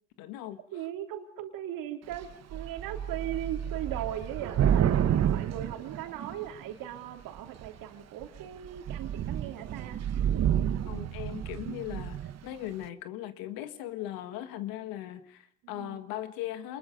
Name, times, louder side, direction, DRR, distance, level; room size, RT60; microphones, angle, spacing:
voice 1, 0.2-0.6 10.9-16.8, left 13 dB, 70° left, 10 dB, 1.8 m, -38 dB
voice 2, 0.7-10.0 15.6-16.0, right 11 dB, 65° right, 4 dB, 3.4 m, -38 dB
Thunder / Rain, 2.1-2.3 2.5-6.6 7.4-7.8 8.2-8.4 8.6-12.4, right 9 dB, 45° right, 1.3 m, -29 dB
29.0 x 21.0 x 5.3 m, 0.65 s
hypercardioid pair, 70°, 36 cm